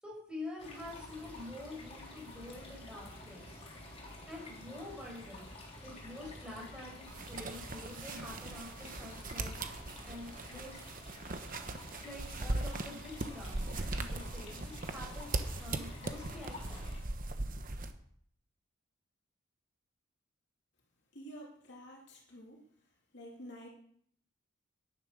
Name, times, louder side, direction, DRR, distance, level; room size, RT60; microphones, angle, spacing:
voice 1, 0.0-3.7 4.3-5.5 5.8-9.6 10.0-10.8 12.0-13.6 13.9-16.9, left 2 dB, 5° right, -4 dB, 5.9 m, -47 dB
sound 1, 0.6-17.0, left 1 dB, 30° left, 3.6 m, -50 dB
sound 2, 7.1-17.9, right 2 dB, 40° right, 1.0 m, -39 dB
voice 2, 21.1-22.6 23.1-23.7, equal, 60° left, -1 dB, 3.0 m, -49 dB
10.5 x 10.5 x 6.4 m, 0.65 s
head